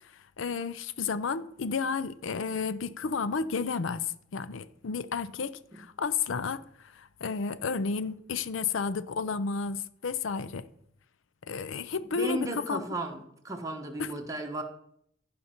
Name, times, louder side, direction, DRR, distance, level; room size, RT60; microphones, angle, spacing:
voice 1, 0.4-6.6 6.9-10.7 11.5-12.4 12.7-12.8 14.0-14.2, left 5 dB, 85° left, 0.5 m, -32 dB
voice 2, 12.1-13.2 13.4-14.6, right 1 dB, 15° right, 1.1 m, -34 dB
15.0 x 5.2 x 4.4 m
head